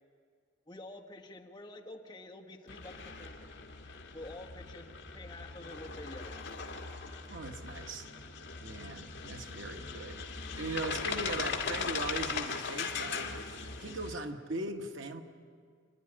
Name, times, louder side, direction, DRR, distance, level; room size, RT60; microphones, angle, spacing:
voice 1, 0.7-3.5 4.1-6.5 10.8-11.1 13.8-14.0, left 1 dB, 20° left, 0 dB, 1.5 m, -48 dB
sound 1, 2.7-14.2, left 5 dB, 60° left, 1.9 m, -39 dB
voice 2, 7.3-8.1 8.6-10.3 10.5-15.2, right 2 dB, 75° right, 4 dB, 1.5 m, -40 dB
28.0 x 11.0 x 9.9 m, 2.1 s
head